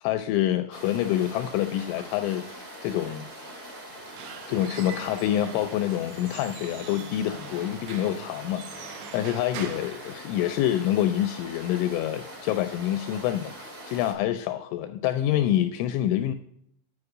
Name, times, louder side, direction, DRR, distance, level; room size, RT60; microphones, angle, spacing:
voice 1, 0.0-3.3 4.2-16.3, left 12 dB, 85° left, 9 dB, 2.8 m, -27 dB
sound 1, 0.7-14.1, right 1 dB, 35° right, 1.5 m, -43 dB
Squeak / Wood, 3.9-10.8, right 7 dB, 80° right, 2.6 m, -43 dB
9.6 x 4.9 x 4.9 m, 0.70 s
omnidirectional pair, 5.9 m